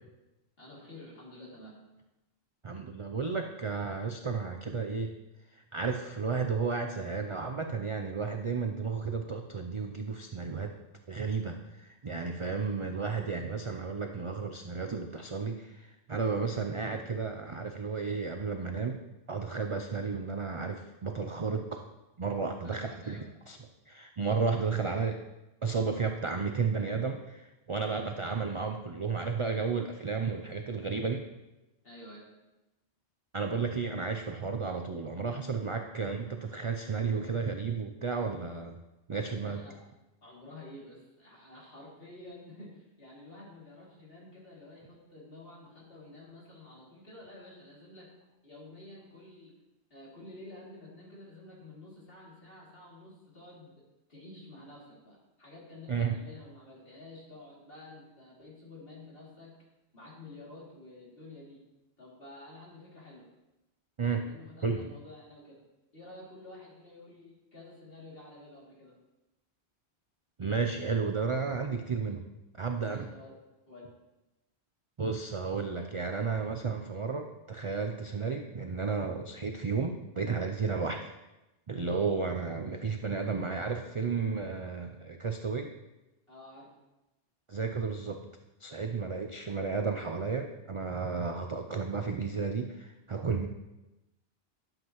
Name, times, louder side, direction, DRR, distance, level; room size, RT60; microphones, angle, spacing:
voice 1, 0.6-1.7 22.6-23.2 23.7-23.8 31.8-32.3 39.3-39.8 40.2-48.1 48.4-49.5 49.9-53.7 54.1-59.5 59.9-61.6 62.0-63.3 64.1-65.6 65.9-68.9 72.9-73.3 73.7-73.9 86.3-86.7, left 2 dB, 55° left, -5 dB, 2.9 m, -50 dB
voice 2, 2.6-5.1 5.5-10.7 11.1-19.0 19.3-21.8 22.2-23.6 23.9-25.2 25.6-31.2 33.3-38.8 39.1-39.6 55.9-56.1 64.0-64.2 64.6-64.8 70.4-72.2 72.5-73.1 75.0-81.1 81.7-85.7 87.5-88.2 88.6-93.5, right 5 dB, 45° right, 5 dB, 0.4 m, -33 dB
11.5 x 7.5 x 3.0 m, 0.99 s
omnidirectional pair, 1.2 m